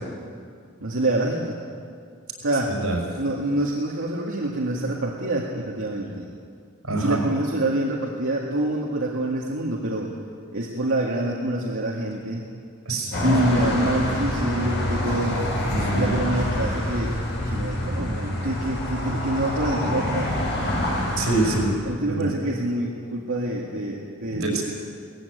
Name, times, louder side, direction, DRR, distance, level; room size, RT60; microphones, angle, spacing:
voice 1, 0.8-1.5 2.4-2.7 3.2-6.3 7.0-10.1 10.5-12.5 13.2-15.4 15.9-17.1 17.4-20.3 21.9-24.6, right 1 dB, 65° right, -3 dB, 2.1 m, -26 dB
voice 2, 6.8-7.3 12.9-13.4 15.7-16.2 21.2-21.7 22.1-22.3 24.3-24.6, right 2 dB, 85° right, 0 dB, 5.5 m, -24 dB
sound 1, 13.1-21.6, left 1 dB, 55° left, 5.5 m, -26 dB
18.0 x 15.5 x 9.6 m, 2.2 s
head